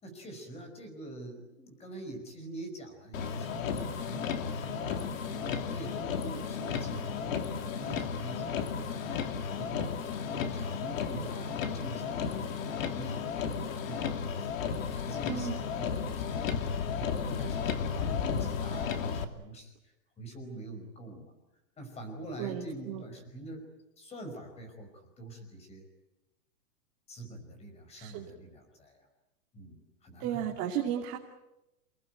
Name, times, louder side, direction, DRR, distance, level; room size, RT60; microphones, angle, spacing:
voice 1, 0.0-21.3 21.8-23.7 24.0-25.9 27.1-29.1 29.5-30.6, right 1 dB, 15° left, 6 dB, 5.3 m, -46 dB
Motor vehicle (road), 3.1-19.2, left 6 dB, 60° left, 2.8 m, -33 dB
voice 2, 15.3-15.6 22.4-23.0 28.0-28.2 30.2-31.2, right 10 dB, 30° right, -1 dB, 2.8 m, -34 dB
29.0 x 19.5 x 9.2 m, 0.94 s
hypercardioid pair, 165°, 44 cm